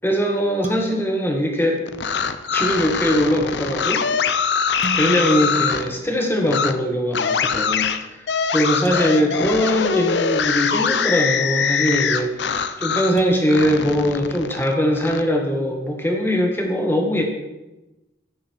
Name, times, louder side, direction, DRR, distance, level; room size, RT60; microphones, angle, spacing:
voice 1, 0.0-1.8 2.5-4.0 4.9-8.3 8.5-17.2, equal, 10° left, 1 dB, 1.6 m, -21 dB
sound 1, 0.6-2.3 4.8-6.8 8.9-11.0 13.2-15.2, right 1 dB, 45° right, 1.2 m, -37 dB
sound 2, 1.9-5.9 6.5-6.7 7.1-13.2 13.5-15.2, left 6 dB, 65° left, 0.6 m, -23 dB
14.5 x 6.7 x 4.6 m, 1.0 s
head